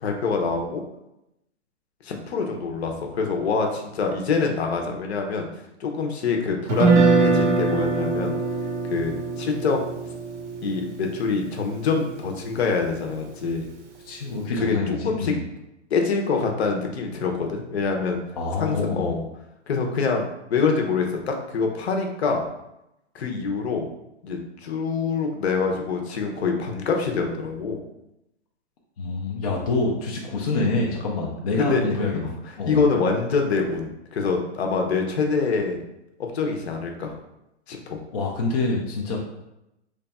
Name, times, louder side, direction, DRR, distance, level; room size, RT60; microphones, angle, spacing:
voice 1, 0.0-0.8 2.0-5.5 5.8-8.4 8.9-9.8 10.6-13.7 14.4-15.3 15.9-18.2 18.6-19.2 19.7-22.4 23.1-23.9 24.2-27.8 31.6-32.0 32.6-35.8 36.3-37.2 37.7-38.0, left 4 dB, 60° left, 2 dB, 0.8 m, -25 dB
Guitar, 6.7-12.8, right 4 dB, 80° right, 0.8 m, -23 dB
voice 2, 14.1-15.4 18.3-19.2 29.0-32.9 38.1-39.2, left 3 dB, 35° left, -2 dB, 0.5 m, -26 dB
3.2 x 2.3 x 4.1 m, 0.88 s
hypercardioid pair, 160°, 36 cm